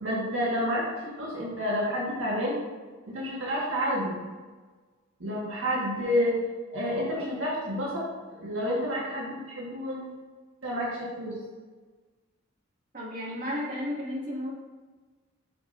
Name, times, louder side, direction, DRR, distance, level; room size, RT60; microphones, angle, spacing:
voice 1, 0.0-2.6 3.0-4.2 5.2-6.3 6.7-8.0 8.4-10.0 10.6-11.4, equal, 70° right, -5 dB, 1.6 m, -29 dB
voice 2, 12.9-14.5, left 1 dB, 40° right, -6 dB, 1.8 m, -33 dB
6.8 x 5.7 x 2.6 m, 1.3 s
head